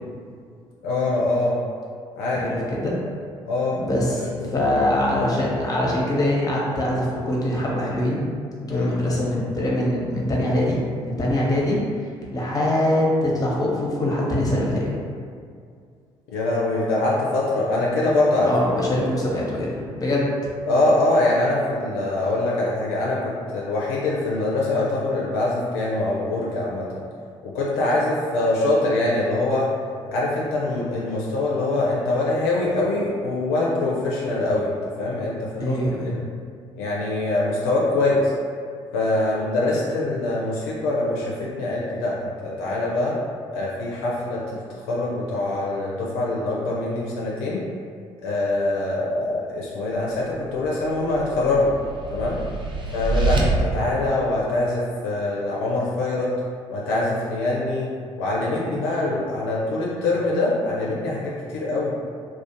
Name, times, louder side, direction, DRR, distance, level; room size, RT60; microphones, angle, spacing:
voice 1, 0.8-1.6 2.2-2.7 3.5-3.8 4.4-4.7 8.7-9.0 16.3-18.5 20.7-26.9 27.4-29.7 30.1-35.8 36.0-36.2 36.8-38.3 38.9-43.2 43.5-47.6 48.2-51.7 52.1-52.4 52.9-56.3 56.7-57.9 58.2-61.9, left 2 dB, 70° left, -5 dB, 0.4 m, -24 dB
voice 2, 2.3-3.0 3.7-8.3 8.7-11.8 12.3-15.0 18.4-20.3 35.6-36.2, left 1 dB, 25° left, -4 dB, 0.7 m, -23 dB
sound 1, 50.6-53.4, right 3 dB, 30° right, 0.5 m, -27 dB
2.3 x 2.1 x 2.6 m, 2.2 s
figure-of-eight pair, 45°, 15 cm